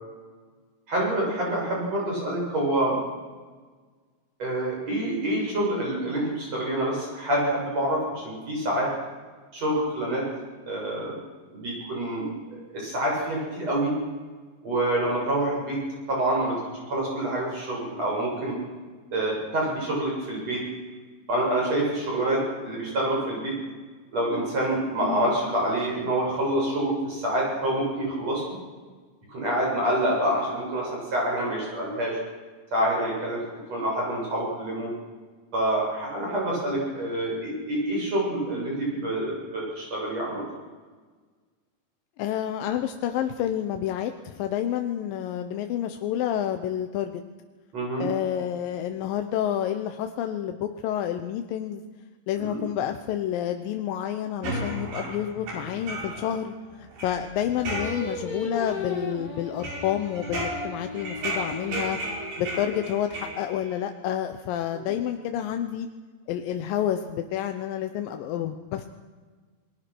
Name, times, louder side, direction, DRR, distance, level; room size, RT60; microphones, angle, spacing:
voice 1, 0.9-3.0 4.4-8.9 9.5-10.3 10.7-11.2 11.5-12.3 12.7-14.0 14.6-15.8 16.1-18.6 19.1-20.6 21.3-23.6 24.1-28.6 29.3-32.2 32.7-33.4 33.7-34.9 35.5-40.4 47.7-48.1 52.4-52.6 64.7-64.9, right 1 dB, 40° right, -3 dB, 8.6 m, -27 dB
voice 2, 25.0-25.3 42.2-47.2 48.0-51.8 52.3-62.0 62.4-65.9 66.3-68.9, left 10 dB, 70° left, 7 dB, 2.4 m, -29 dB
sound 1, 54.4-56.4 56.7-58.3 58.7-59.2 59.6-63.7, right 1 dB, 60° right, 7.2 m, -34 dB
Singing, 57.8-63.1, left 3 dB, 25° left, 2.9 m, -37 dB
28.0 x 21.5 x 6.2 m, 1.4 s
omnidirectional pair, 4.5 m